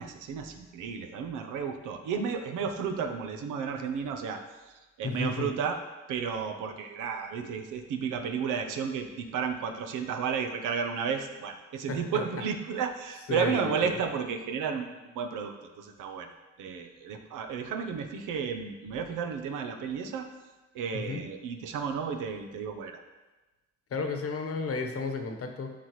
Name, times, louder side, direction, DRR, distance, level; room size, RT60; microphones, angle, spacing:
voice 1, 0.0-5.8 6.1-16.3 16.6-20.3 20.7-23.0, right 6 dB, 90° right, 5 dB, 0.8 m, -33 dB
voice 2, 5.0-5.5 11.9-12.0 13.3-13.9 20.9-21.2 23.9-25.7, left 4 dB, 50° left, 5 dB, 1.1 m, -33 dB
12.0 x 4.2 x 3.2 m, 1.1 s
cardioid pair, 90°, 30 cm